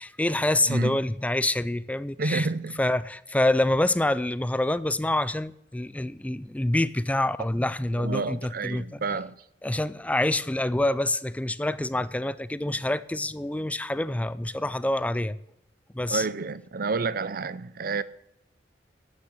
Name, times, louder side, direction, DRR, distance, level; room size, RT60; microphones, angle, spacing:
voice 1, 0.0-2.5 2.8-9.2 9.6-15.4 15.9-16.3, left 1 dB, 10° left, 0.4 m, -26 dB
voice 2, 2.2-2.8 8.0-9.3 16.1-18.0, right 4 dB, 55° right, 0.6 m, -29 dB
9.8 x 8.9 x 8.1 m
head